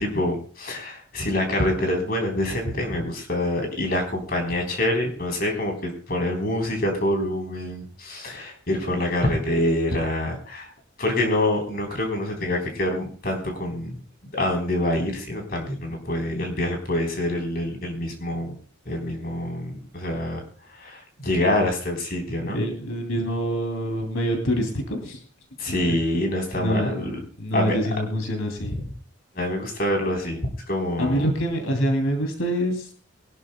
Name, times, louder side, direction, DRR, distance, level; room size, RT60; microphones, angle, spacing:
voice 1, 0.0-10.7 11.0-14.0 14.3-18.6 18.9-20.4 20.8-22.6 25.6-27.2 27.5-27.8 28.6-28.9 29.4-30.4 30.7-31.3, left 1 dB, 45° left, 2 dB, 3.6 m, -26 dB
voice 2, 22.4-25.2 26.5-27.1 27.4-28.8 31.0-32.9, equal, 85° left, 4 dB, 2.8 m, -25 dB
22.5 x 12.0 x 2.2 m, 0.43 s
head